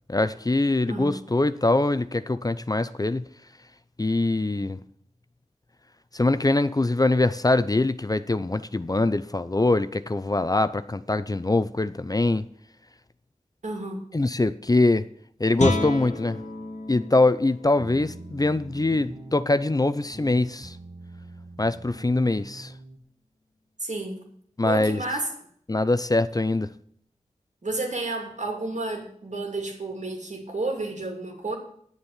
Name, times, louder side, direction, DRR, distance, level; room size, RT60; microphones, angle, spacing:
voice 1, 0.1-3.2 4.0-4.8 6.1-12.4 14.1-15.0 15.4-16.4 16.9-20.8 21.6-22.7 24.6-25.0 25.7-26.7, left 2 dB, 30° left, 0.5 m, -23 dB
voice 2, 13.6-14.0 23.8-24.2 24.6-25.3 27.6-31.6, right 2 dB, 70° right, 2.9 m, -31 dB
Guitar, 15.5-21.1, left 2 dB, 65° left, 1.5 m, -34 dB
sound 1, 17.8-23.0, right 2 dB, 40° right, 1.2 m, -43 dB
9.6 x 7.0 x 8.9 m
wide cardioid pair, 55°, 13 cm